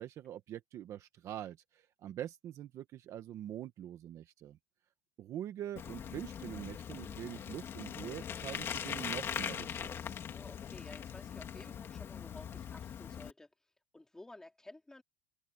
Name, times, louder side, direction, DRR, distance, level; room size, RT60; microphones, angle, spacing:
voice 1, 0.0-4.6 5.2-10.2, right 11 dB, 30° right, 1.0 m, -44 dB
Bicycle, 5.8-13.3, left 8 dB, 25° left, 2.4 m, -41 dB
voice 2, 10.3-13.5 13.9-15.0, left 2 dB, 5° left, 3.3 m, -53 dB
cardioid pair, 165°, 10 cm